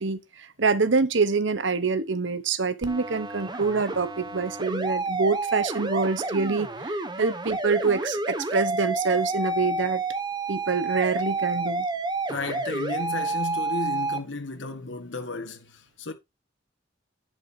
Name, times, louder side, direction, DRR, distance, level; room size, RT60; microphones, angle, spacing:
voice 1, 0.0-10.0 10.5-11.9, right 4 dB, 85° right, 1.0 m, -26 dB
sound 1, 2.8-14.2, right 3 dB, 25° right, 1.6 m, -30 dB
voice 2, 12.3-16.1, left 3 dB, 90° left, 1.6 m, -33 dB
11.0 x 8.2 x 2.7 m
head